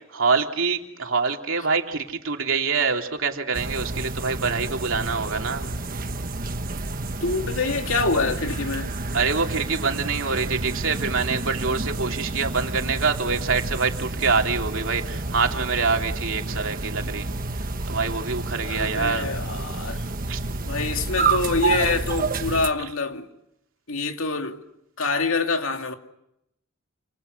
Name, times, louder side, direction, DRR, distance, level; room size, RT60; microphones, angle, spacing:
voice 1, 0.1-5.7 9.1-17.3 17.9-19.3 20.3-20.4 22.8-22.9, right 4 dB, 70° right, 3.1 m, -25 dB
sound 1, 3.5-22.7, right 3 dB, 45° right, 1.4 m, -29 dB
voice 2, 7.2-8.9 18.6-20.0 20.6-23.3 23.9-24.6 25.0-25.9, left 3 dB, 75° left, 2.5 m, -25 dB
29.5 x 27.5 x 6.7 m
head